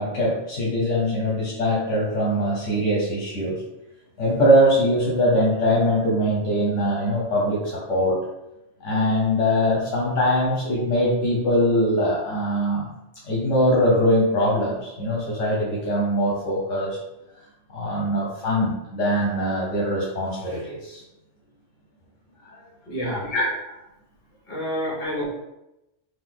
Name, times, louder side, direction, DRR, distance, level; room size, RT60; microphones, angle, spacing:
voice 1, 0.0-3.6 4.2-8.2 8.8-12.8 13.3-17.0 17.7-21.0 22.4-22.6 23.3-23.8, equal, 75° left, -5 dB, 1.3 m, -22 dB
voice 2, 22.9-23.3 24.5-25.2, equal, 50° left, -4 dB, 1.5 m, -28 dB
3.9 x 2.8 x 3.8 m, 0.90 s
omnidirectional pair, 1.3 m